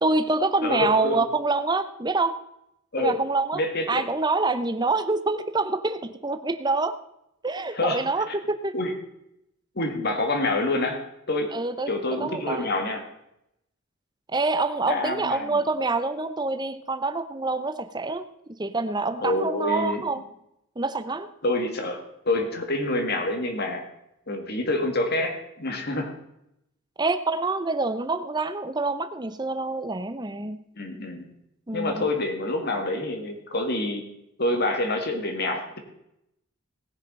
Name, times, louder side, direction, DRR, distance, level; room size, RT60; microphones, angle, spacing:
voice 1, 0.0-2.4 3.0-3.6 3.9-7.0 7.4-8.7 11.5-11.9 12.2-12.7 14.3-18.3 18.6-20.2 20.8-21.3 27.0-30.6 31.7-32.1, right 3 dB, 20° right, 9 dB, 0.7 m, -26 dB
voice 2, 0.6-1.3 2.9-3.3 3.5-4.1 7.7-8.3 8.7-9.0 9.8-11.0 11.3-11.5 11.9-13.0 14.9-15.6 19.2-20.0 21.4-23.9 24.3-26.1 30.8-31.3 31.7-34.0 34.4-35.8, left 2 dB, 50° left, 5 dB, 2.0 m, -27 dB
18.5 x 6.6 x 5.5 m, 0.81 s
head